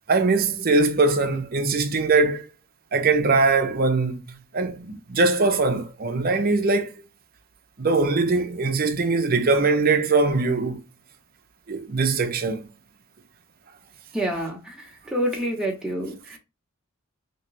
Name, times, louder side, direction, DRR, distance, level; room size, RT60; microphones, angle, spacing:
voice 1, 0.1-2.4 2.9-4.2 4.5-6.9 7.8-10.8 11.7-12.7, right 3 dB, 45° right, 0.6 m, -21 dB
voice 2, 14.1-16.4, right 1 dB, 5° right, 1.0 m, -28 dB
3.2 x 2.9 x 3.0 m
head